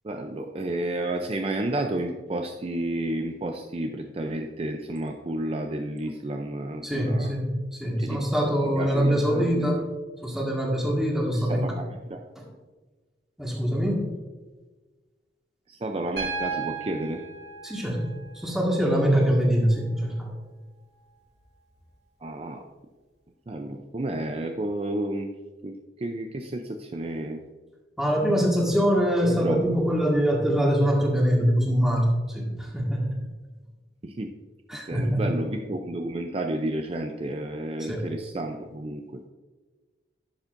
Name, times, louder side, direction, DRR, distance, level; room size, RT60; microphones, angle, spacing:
voice 1, 0.0-7.3 8.0-9.8 11.3-12.2 15.7-17.2 22.2-22.6 23.5-25.3 25.6-27.4 29.4-29.8 34.0-34.3 34.9-39.0, right 1 dB, 35° right, 4 dB, 0.5 m, -31 dB
voice 2, 6.8-7.5 7.8-9.8 10.2-11.8 12.3-12.4 13.4-14.1 17.6-18.1 18.3-20.3 28.0-33.2 34.7-35.3 37.9-38.0, equal, 5° right, -3 dB, 1.8 m, -23 dB
Piano, 16.2-20.2 21.7-21.8, right 5 dB, 80° right, 2.2 m, -37 dB
11.5 x 7.1 x 2.6 m, 1.3 s
head